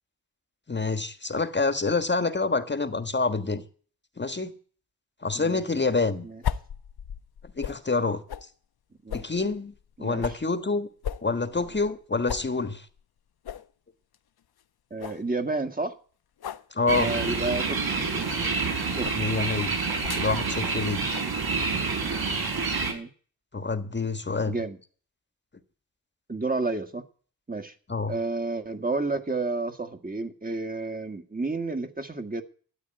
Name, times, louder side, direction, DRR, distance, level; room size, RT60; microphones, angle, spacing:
voice 1, 0.7-3.6 4.2-4.5 5.2-6.3 7.6-8.2 9.1-9.7 10.0-10.9 11.2-12.9 16.7-17.1 19.1-19.8 20.1-21.0 23.5-24.5 27.9-28.1, left 3 dB, 25° left, 1.5 m, -27 dB
sound 1, 6.4-7.9 8.3-8.5 9.1-10.5 11.0-12.0 12.3-12.5 12.9-13.0 13.4-13.7 14.1-14.2 14.6-14.7 15.0-15.3 16.4-16.7 17.6-17.8 19.0-19.2 20.0-20.3 21.1-21.3, left 8 dB, 65° left, 1.0 m, -35 dB
voice 2, 14.9-16.0 17.0-18.3 18.9-19.2 22.9-23.1 24.5-24.8 26.3-27.0 27.5-27.7 28.1-32.4, right 3 dB, 20° right, 1.7 m, -31 dB
sound 2, 16.9-22.9, right 4 dB, 60° right, 5.0 m, -28 dB
13.5 x 8.9 x 9.1 m
cardioid pair, 70°, 41 cm